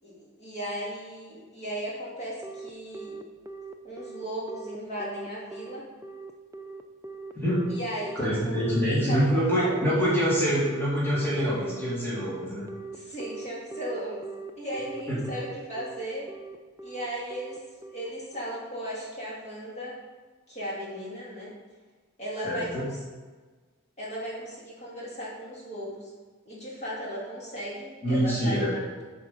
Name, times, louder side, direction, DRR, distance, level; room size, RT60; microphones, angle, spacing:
voice 1, 0.0-3.2 3.8-5.9 7.7-10.0 12.9-14.2 14.6-16.3 16.8-20.0 20.5-21.5 22.2-23.0 24.0-26.1 26.5-28.8, equal, 30° left, -5 dB, 2.3 m, -36 dB
Telephone, 2.4-18.6, right 4 dB, 15° right, 0.4 m, -41 dB
voice 2, 7.3-7.8 8.1-12.7 15.1-15.2 22.4-22.9 28.0-28.7, equal, 10° left, -8 dB, 2.1 m, -25 dB
10.5 x 4.8 x 5.2 m, 1.4 s
head